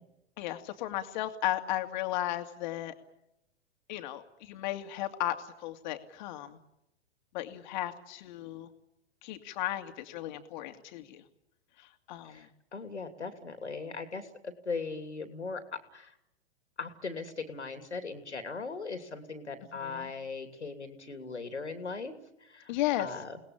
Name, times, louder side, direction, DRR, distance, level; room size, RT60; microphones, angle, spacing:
voice 1, 0.4-2.9 3.9-5.4 5.6-6.6 7.3-8.7 9.2-11.2 12.1-12.5 19.8-20.1 22.7-23.1, left 14 dB, 40° left, 8 dB, 2.6 m, -35 dB
voice 2, 12.3-16.1 16.8-22.1 22.4-22.7 23.0-23.4, left 4 dB, 75° left, 8 dB, 3.0 m, -39 dB
29.5 x 19.5 x 7.5 m, 0.84 s
figure-of-eight pair, 105°, 34 cm